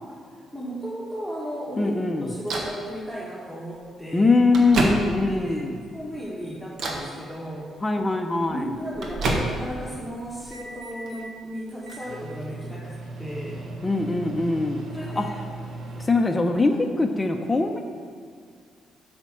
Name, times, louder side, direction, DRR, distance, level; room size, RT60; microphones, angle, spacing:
voice 1, 0.5-1.9 2.2-4.3 5.2-5.6 5.9-7.7 8.0-8.1 8.5-13.7 14.9-15.3 16.7-16.9, equal, 5° right, -6 dB, 1.5 m, -35 dB
voice 2, 1.8-2.3 4.1-5.8 7.8-8.8 13.8-14.8 15.1-15.5 16.0-16.7 17.0-17.8, left 3 dB, 20° left, 3 dB, 0.6 m, -22 dB
Microwave oven, 2.5-2.8 3.7-3.8 4.3-5.4 5.9-6.3 6.7-7.1 8.3-9.8 10.2-11.3 11.8-16.1, right 2 dB, 65° right, 1.2 m, -31 dB
8.1 x 4.4 x 6.1 m, 2.1 s
cardioid pair, 90°, 0 cm